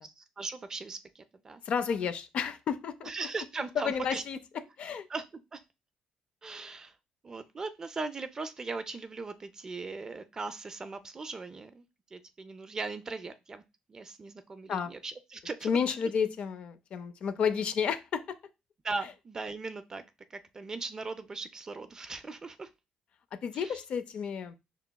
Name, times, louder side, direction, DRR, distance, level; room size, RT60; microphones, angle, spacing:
voice 1, 0.0-1.6 3.0-4.2 5.1-5.6 6.4-7.0 7.2-11.8 12.1-13.6 13.9-15.7 18.8-20.0 20.3-22.7 23.5-23.8, right 3 dB, 25° right, 10 dB, 0.4 m, -39 dB
voice 2, 1.7-3.1 3.8-4.4 4.8-5.1 14.7-14.9 15.6-18.4 23.4-24.6, left 7 dB, 50° left, 10 dB, 0.4 m, -31 dB
5.7 x 2.9 x 2.2 m, 0.25 s
cardioid pair, 135°, 2 cm